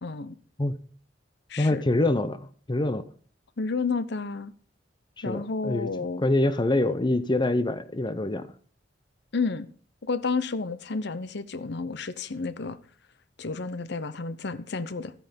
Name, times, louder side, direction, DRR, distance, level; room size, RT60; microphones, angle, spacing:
voice 1, 0.0-0.4 1.5-1.8 3.6-4.5 5.2-6.3 9.3-9.7 10.0-12.8 13.4-15.1, left 4 dB, 65° left, 0.8 m, -31 dB
voice 2, 1.6-3.0 5.3-5.9 6.2-8.5, left 2 dB, 25° left, 0.7 m, -25 dB
13.0 x 9.2 x 5.2 m
head